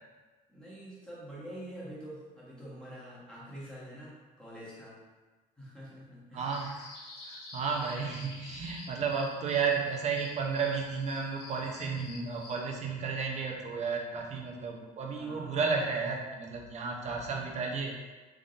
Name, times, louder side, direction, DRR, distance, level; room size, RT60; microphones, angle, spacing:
voice 1, 0.5-4.9 5.6-6.5 15.1-15.6, equal, 5° left, -8 dB, 1.4 m, -46 dB
voice 2, 6.3-6.7 7.2-17.9, right 5 dB, 40° right, 0 dB, 0.7 m, -33 dB
sound 1, 6.4-12.6, left 2 dB, 80° left, 1.1 m, -48 dB
3.6 x 3.6 x 2.5 m, 1.3 s
cardioid pair, 110°, 17 cm